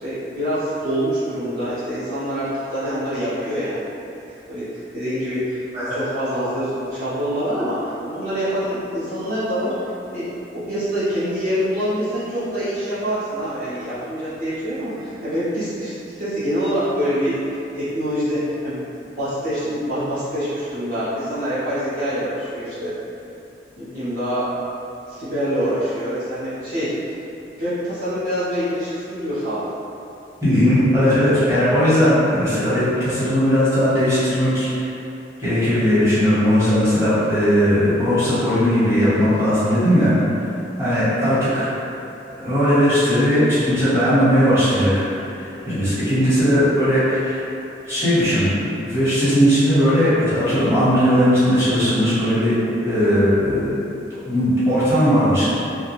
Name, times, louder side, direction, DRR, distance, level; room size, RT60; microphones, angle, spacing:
voice 1, 0.0-3.9 4.5-10.3 10.5-22.9 23.8-24.5 25.1-29.6 41.5-41.6, equal, 50° right, -13 dB, 0.6 m, -25 dB
voice 2, 30.4-34.9 35.4-40.5 40.8-41.7 42.4-44.9 45.3-47.4 47.8-48.6 48.8-52.5 52.8-53.8 54.2-55.5, equal, 15° right, -14 dB, 0.9 m, -18 dB
2.3 x 2.1 x 3.0 m, 2.7 s
head